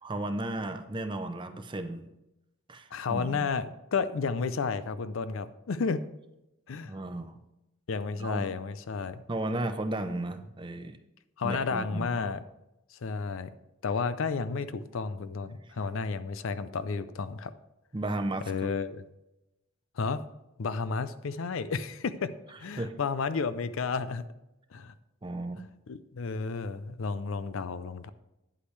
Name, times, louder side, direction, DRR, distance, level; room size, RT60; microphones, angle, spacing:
voice 1, 0.0-2.1 2.7-3.4 6.9-7.4 8.2-8.4 9.3-11.0 11.4-12.1 17.9-18.5 22.8-22.9 25.2-25.6, right 2 dB, 20° right, 8 dB, 0.5 m, -34 dB
voice 2, 2.9-6.0 6.7-6.9 7.9-9.2 11.4-12.4 13.0-13.5 13.8-17.5 18.5-19.0 20.0-20.2 20.6-22.3 22.6-24.2 24.7-24.9 25.9-28.1, left 5 dB, 70° left, 14 dB, 0.5 m, -32 dB
9.9 x 8.3 x 3.2 m, 0.91 s
head